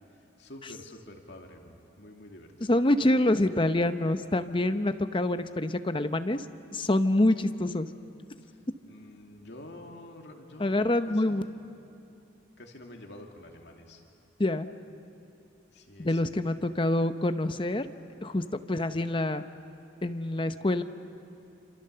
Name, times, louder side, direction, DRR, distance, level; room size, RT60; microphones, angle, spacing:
voice 1, 0.1-2.7 8.4-8.6 8.9-11.6 12.6-14.1 15.7-16.2 16.5-16.6, left 1 dB, 65° left, 2 dB, 2.5 m, -48 dB
voice 2, 2.7-6.4 6.7-7.9 10.6-11.4 14.4-14.7 16.0-17.9 18.2-19.4 20.0-20.8, left 1 dB, 30° left, 10 dB, 0.8 m, -26 dB
27.0 x 27.0 x 6.8 m, 2.6 s
head